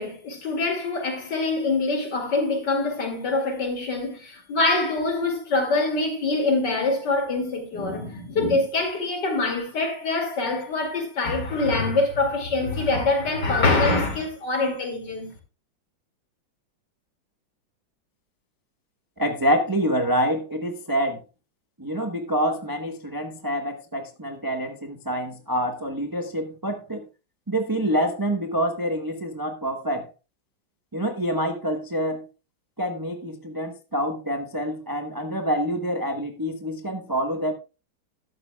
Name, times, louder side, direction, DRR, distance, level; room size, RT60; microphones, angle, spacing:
voice 1, 0.0-15.3, left 3 dB, 60° left, 3.0 m, -24 dB
voice 2, 19.2-21.2 21.8-27.0 27.5-30.1 30.9-32.3 32.8-37.5, equal, 20° right, 0.6 m, -26 dB
13.0 x 11.5 x 2.3 m
omnidirectional pair, 2.2 m